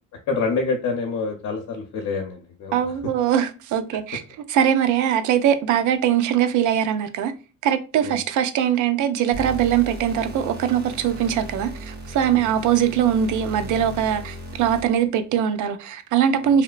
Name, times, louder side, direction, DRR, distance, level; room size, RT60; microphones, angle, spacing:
voice 1, 0.3-2.9 8.0-8.2 12.3-12.5 16.4-16.5, left 4 dB, 65° left, 0.6 m, -27 dB
voice 2, 2.7-4.2 4.5-7.3 7.6-16.6, right 9 dB, 75° right, 0.4 m, -21 dB
sound 1, 9.3-15.1, equal, 35° right, 0.8 m, -36 dB
2.9 x 2.1 x 2.3 m
cardioid pair, 90°, 30 cm